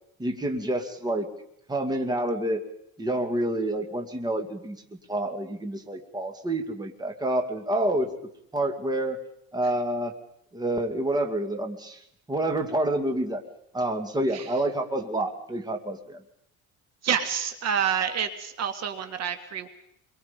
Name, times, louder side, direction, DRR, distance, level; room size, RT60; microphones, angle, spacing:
voice 1, 0.2-1.3 1.7-2.6 3.0-4.8 5.1-8.1 8.5-9.2 9.5-10.1 10.5-12.0 12.3-13.4 13.7-16.2, right 1 dB, 10° right, 4 dB, 2.1 m, -28 dB
voice 2, 17.0-19.7, right 8 dB, 45° right, 8 dB, 1.9 m, -28 dB
28.0 x 23.0 x 5.2 m, 0.73 s
cardioid pair, 145°, 35 cm